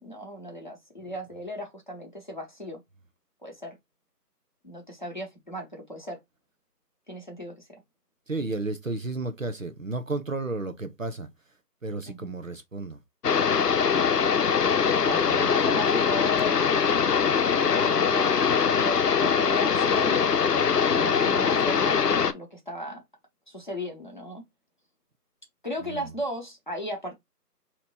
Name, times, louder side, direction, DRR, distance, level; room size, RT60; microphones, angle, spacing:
voice 1, 0.0-2.8 3.4-3.8 4.6-6.2 7.1-7.7 12.0-12.3 15.0-16.6 17.8-18.5 18.8-20.2 21.0-23.0 23.5-24.4 25.6-27.2, equal, 30° left, 0.9 m, -36 dB
voice 2, 8.3-11.3 11.8-13.0 15.1-15.5 20.9-21.1 25.8-26.0, right 3 dB, 55° right, 0.6 m, -33 dB
sound 1, 13.2-22.3, left 6 dB, 75° left, 0.7 m, -22 dB
3.3 x 2.9 x 4.1 m
figure-of-eight pair, 170°, 49 cm